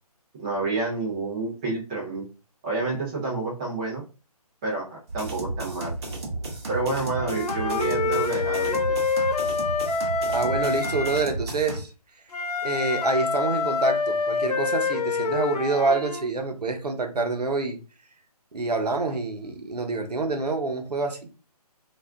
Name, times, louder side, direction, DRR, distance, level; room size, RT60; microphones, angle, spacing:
voice 1, 0.4-2.2 2.6-4.0 4.6-5.9 6.7-8.8, right 3 dB, 10° right, -5 dB, 0.4 m, -29 dB
sound 1, 5.1-11.8, right 2 dB, 40° right, 0.8 m, -33 dB
Wind instrument woodwind instrument, 7.2-11.3 12.3-16.2, left 4 dB, 75° left, 0.6 m, -26 dB
voice 2, 10.3-11.9 12.6-17.8 18.5-21.2, right 3 dB, 85° right, 5 dB, 0.7 m, -26 dB
2.4 x 2.2 x 3.4 m, 0.34 s
figure-of-eight pair, 150°, 20 cm